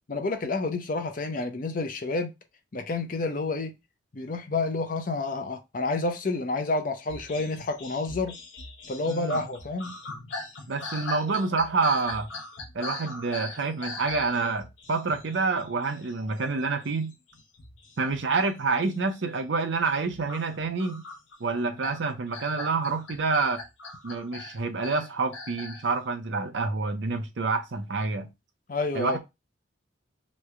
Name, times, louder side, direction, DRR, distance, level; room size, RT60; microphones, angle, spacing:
voice 1, 0.1-2.3 2.7-3.7 4.1-8.4 8.9-9.9 28.7-29.2, left 3 dB, 45° left, 0.5 m, -29 dB
sound 1, 7.1-16.5 16.8-18.5 18.8-19.2 19.9-25.9, left 2 dB, 70° left, 0.8 m, -41 dB
voice 2, 9.1-9.4 10.7-12.3 12.7-17.1 18.0-21.0 21.4-23.6 24.0-28.3 28.9-29.2, right 4 dB, 65° right, 0.6 m, -28 dB
3.1 x 2.2 x 3.6 m
head